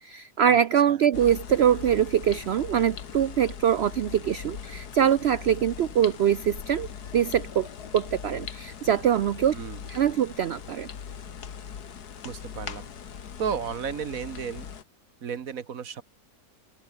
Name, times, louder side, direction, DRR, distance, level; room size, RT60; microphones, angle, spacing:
voice 1, 0.0-6.9 7.1-7.7 7.9-9.5 9.9-10.9, right 9 dB, 85° right, 0.5 m, -23 dB
sound 1, 1.1-14.8, left 7 dB, 70° left, 2.0 m, -40 dB
voice 2, 12.2-12.9 13.4-14.7 15.2-16.0, right 7 dB, 55° right, 1.5 m, -33 dB
open air
omnidirectional pair, 1.8 m